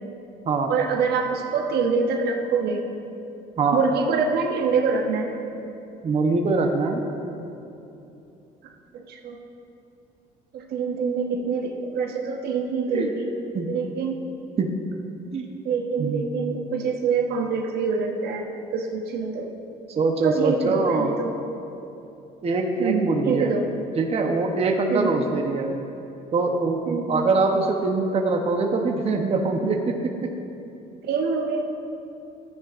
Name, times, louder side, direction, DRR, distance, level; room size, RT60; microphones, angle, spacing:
voice 1, 0.7-2.8 3.7-5.3 8.9-9.4 10.5-13.3 13.7-14.2 15.6-18.5 18.7-19.5 20.2-21.3 22.8-23.7 24.9-25.2 26.9-27.1 31.0-31.6, right 5 dB, 75° right, 2 dB, 1.1 m, -25 dB
voice 2, 6.0-7.0 12.9-13.1 13.5-13.7 14.6-14.7 15.3-15.5 16.0-16.3 19.9-21.1 22.4-23.5 24.0-25.7 26.3-30.1, right 3 dB, 35° right, 2 dB, 0.8 m, -23 dB
14.0 x 9.8 x 2.5 m, 2.8 s
cardioid pair, 110°, 17 cm